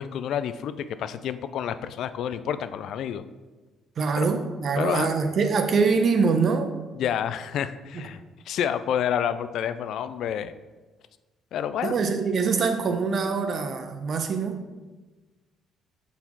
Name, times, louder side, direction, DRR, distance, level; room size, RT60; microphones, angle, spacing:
voice 1, 0.0-3.2 4.2-4.3 4.8-5.2 6.9-10.5 11.5-11.9, left 9 dB, 70° left, 12 dB, 0.3 m, -29 dB
voice 2, 4.0-6.7 11.8-14.6, right 5 dB, 50° right, 6 dB, 0.7 m, -24 dB
5.8 x 4.1 x 4.5 m, 1.2 s
cardioid pair, 105°, 0 cm